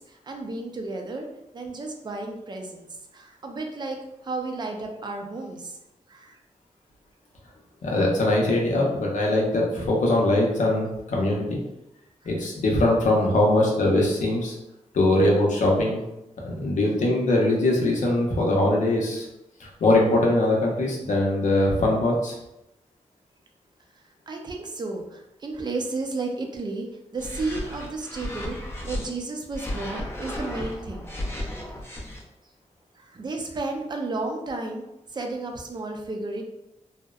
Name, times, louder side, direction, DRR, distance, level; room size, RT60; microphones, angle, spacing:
voice 1, 0.1-1.3 1.5-2.9 3.1-4.0 4.2-5.8 6.1-6.4 12.2-12.3 24.3-26.9 27.1-28.6 28.8-31.1 33.0-34.8 35.1-36.4, right 3 dB, 35° right, 3 dB, 0.4 m, -32 dB
voice 2, 7.8-11.6 12.3-14.5 14.9-16.0 16.4-19.3 19.6-22.4, left 1 dB, 80° left, -1 dB, 0.6 m, -22 dB
sound 1, 27.2-29.1 29.5-32.2, left 1 dB, 20° left, 0.5 m, -34 dB
2.7 x 2.0 x 2.3 m, 0.89 s
wide cardioid pair, 100°, 13 cm